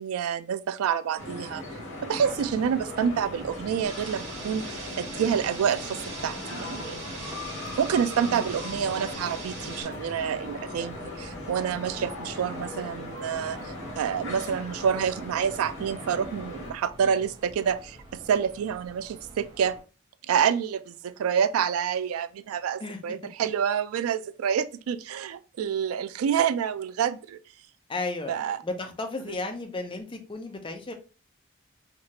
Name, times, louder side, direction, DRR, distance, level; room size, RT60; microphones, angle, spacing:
voice 1, 0.0-1.6 2.0-7.0 7.8-19.8 20.3-27.4 28.3-28.6, right 7 dB, 90° right, 0.3 m, -28 dB
sound 1, 1.2-16.7, left 2 dB, 70° left, 1.8 m, -38 dB
sound 2, 2.3-19.8, equal, 20° right, 1.1 m, -49 dB
sound 3, 3.8-9.8, right 4 dB, 65° right, 1.7 m, -42 dB
voice 2, 8.2-8.6 22.8-23.0 27.9-28.4 28.6-30.9, left 2 dB, 25° left, 0.5 m, -34 dB
4.6 x 2.4 x 2.8 m
head